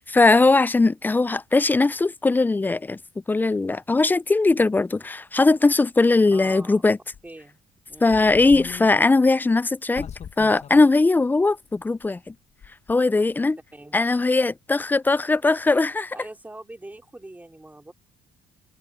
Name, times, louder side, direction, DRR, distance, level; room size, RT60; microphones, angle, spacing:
voice 1, 0.0-3.0 3.3-7.0 8.0-10.1 10.4-12.3 12.9-13.6 13.9-16.2, left 3 dB, 10° left, 0.3 m, -20 dB
voice 2, 6.3-6.9 7.2-7.6 7.9-8.4 13.7-14.0 16.1-17.9, right 2 dB, 10° right, 3.3 m, -43 dB
sound 1, 7.1-7.3 7.9-8.9 9.3-9.4 9.9-10.9 11.2-11.3 12.0-12.3 12.6-12.9, left 8 dB, 40° left, 1.0 m, -39 dB
cardioid pair, 110°, 17 cm